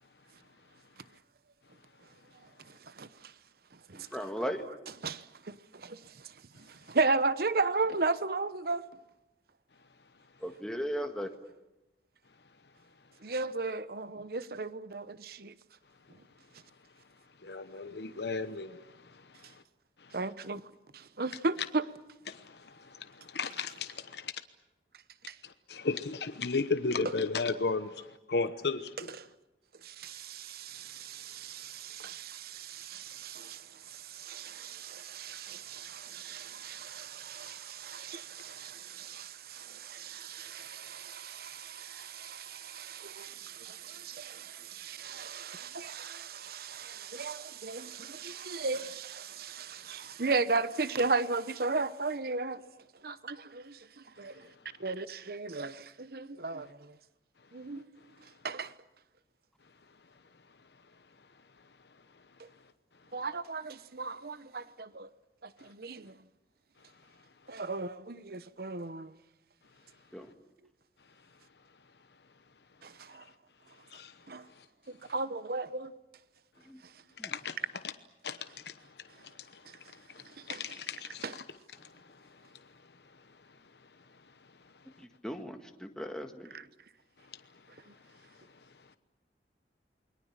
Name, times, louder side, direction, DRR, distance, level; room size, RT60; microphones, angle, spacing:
voice 1, 2.7-3.3 3.9-4.1 5.0-8.9 13.2-15.5 20.1-20.6 20.9-21.8 25.3-25.4 29.8-52.6 53.0-54.5 54.8-57.0 57.5-57.9 58.4-58.7 62.4-62.5 63.1-65.1 65.4-66.1 67.5-69.1 72.8-73.2 74.3-74.5 74.9-75.9 80.5-80.6 81.2-81.3, right 3 dB, 55° right, 0.9 m, -36 dB
voice 2, 3.9-4.6 10.4-11.3 70.1-70.3 76.7-76.8 77.2-77.3 85.0-86.6, equal, 5° left, 1.7 m, -37 dB
voice 3, 17.4-19.6 20.0-20.2 22.3-24.3 25.4-29.2 73.9-74.1 74.6-74.7 77.2-77.6 78.2-81.4 81.7-82.7 87.3-87.4, left 4 dB, 65° left, 1.0 m, -36 dB
29.0 x 22.0 x 7.4 m
head